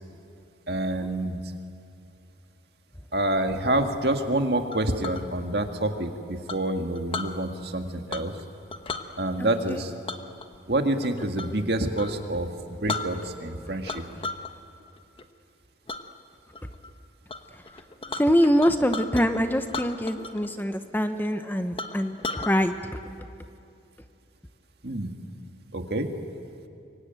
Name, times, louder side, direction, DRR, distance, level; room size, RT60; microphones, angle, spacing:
voice 1, 0.7-1.4 3.1-8.3 9.2-9.9 10.7-14.0 24.8-25.1 25.7-26.1, right 1 dB, 60° right, 5 dB, 1.9 m, -27 dB
Chink clink, 4.7-5.2 6.5-7.3 8.1-8.4 8.7-9.1 10.1-11.6 11.9-12.1 12.6-12.7 12.9-13.5 13.9-14.5 14.9-15.2 15.9-16.0 16.5-16.9 17.3-17.4 17.6-19.3 19.7-20.5 20.7-20.8 21.3-21.4 21.8-22.5, left 3 dB, 30° left, 1.1 m, -35 dB
voice 2, 9.4-9.8 17.5-17.8 18.2-23.0, equal, 10° left, 8 dB, 0.9 m, -25 dB
26.5 x 23.0 x 9.2 m, 2.5 s
head